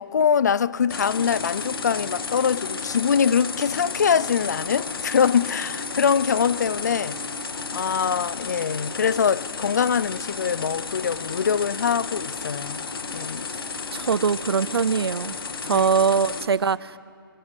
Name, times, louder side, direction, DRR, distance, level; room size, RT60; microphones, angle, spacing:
voice 1, 0.0-7.2 7.7-12.9 13.1-13.5 15.7-15.9, left 7 dB, 45° left, 0.5 m, -23 dB
sound 1, 0.9-16.5, left 4 dB, 65° left, 1.8 m, -33 dB
voice 2, 13.9-15.4 15.6-17.0, right 6 dB, 80° right, 0.7 m, -22 dB
26.0 x 21.0 x 8.2 m
hypercardioid pair, 170°, 13 cm